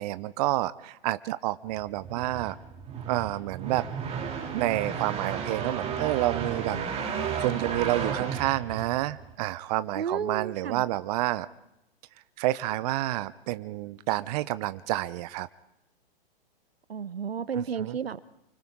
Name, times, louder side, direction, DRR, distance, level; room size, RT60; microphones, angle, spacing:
voice 1, 0.0-2.6 3.1-3.8 4.5-6.8 7.4-11.5 12.4-15.5 17.5-18.0, right 16 dB, 40° right, 15 dB, 0.7 m, -29 dB
sound 1, 1.7-9.3, right 6 dB, 20° right, 2.7 m, -33 dB
voice 2, 10.0-10.8 16.9-18.2, right 7 dB, 85° right, 17 dB, 0.9 m, -32 dB
29.0 x 24.5 x 3.7 m, 0.84 s
hypercardioid pair, 120°, 29 cm